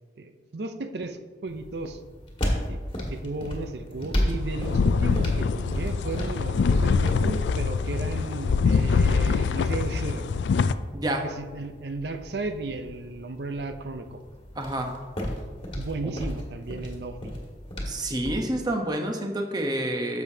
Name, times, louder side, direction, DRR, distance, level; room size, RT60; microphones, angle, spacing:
voice 1, 0.2-2.0 2.7-2.8 3.1-10.3 11.2-14.2 15.8-17.3, right 3 dB, 65° right, 8 dB, 0.6 m, -34 dB
sound 1, 1.5-18.5, equal, 30° left, 1.6 m, -34 dB
sound 2, 4.5-10.7, left 5 dB, 80° left, 0.3 m, -24 dB
voice 2, 14.6-14.9 17.9-20.2, right 1 dB, 25° right, 3 dB, 0.9 m, -28 dB
10.5 x 7.1 x 2.8 m, 1.4 s
head